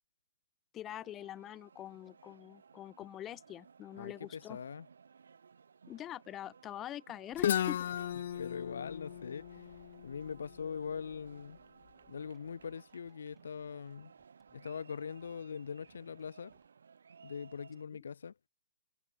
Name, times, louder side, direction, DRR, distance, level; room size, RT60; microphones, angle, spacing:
voice 1, 0.7-4.6 5.9-7.9, left 12 dB, 15° left, 1.4 m, -44 dB
sound 1, 0.8-17.8, right 6 dB, 80° right, 6.8 m, -60 dB
voice 2, 4.0-4.9 8.3-9.7 10.0-11.6 12.1-14.1 14.5-16.5 17.2-18.3, left 6 dB, 75° left, 1.6 m, -42 dB
Guitar, 7.4-11.2, left 10 dB, 50° left, 0.5 m, -36 dB
sound 2, 9.7-11.7 11.9-13.9 14.2-16.7, right 4 dB, 5° right, 6.2 m, -75 dB
hypercardioid pair, 160°, 0 cm